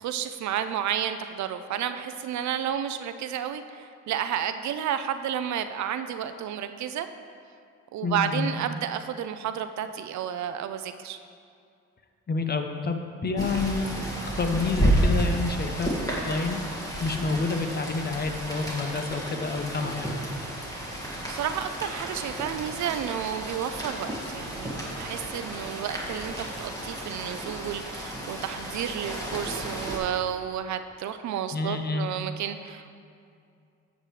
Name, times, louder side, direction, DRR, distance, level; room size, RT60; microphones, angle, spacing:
voice 1, 0.0-7.1 7.9-11.2 21.3-32.9, right 9 dB, 70° right, 10 dB, 0.5 m, -31 dB
voice 2, 8.0-8.5 12.3-20.2 31.5-32.1, left 4 dB, 35° left, 6 dB, 0.7 m, -29 dB
Rain, 13.4-30.0, right 1 dB, 10° left, 2.0 m, -31 dB
9.6 x 7.4 x 3.2 m, 2.4 s
cardioid pair, 90°, 30 cm